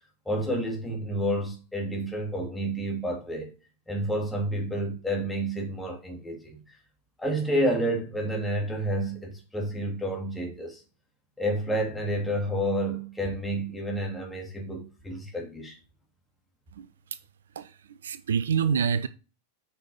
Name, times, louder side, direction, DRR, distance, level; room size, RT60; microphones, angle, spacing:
voice 1, 0.3-3.5 3.9-6.8 7.2-10.8 11.4-15.8, right 1 dB, 5° left, 2.6 m, -30 dB
voice 2, 17.6-19.1, right 7 dB, 65° right, 0.4 m, -27 dB
8.7 x 5.6 x 3.0 m
figure-of-eight pair, 90°, 0 cm